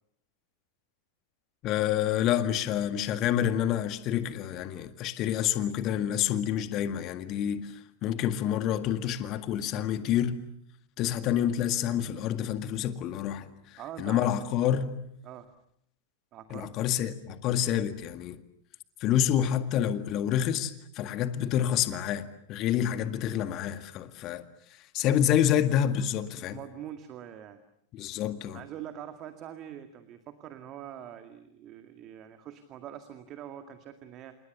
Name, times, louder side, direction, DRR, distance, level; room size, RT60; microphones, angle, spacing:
voice 1, 1.6-10.4 11.0-14.9 16.5-18.4 19.0-24.4 24.7-26.6 27.9-28.6, left 10 dB, 35° left, 1.9 m, -28 dB
voice 2, 13.8-14.4 15.2-15.5 16.3-16.8 26.5-27.6 28.5-34.4, right 10 dB, 35° right, 2.1 m, -44 dB
29.5 x 28.5 x 6.9 m
figure-of-eight pair, 90°, 0 cm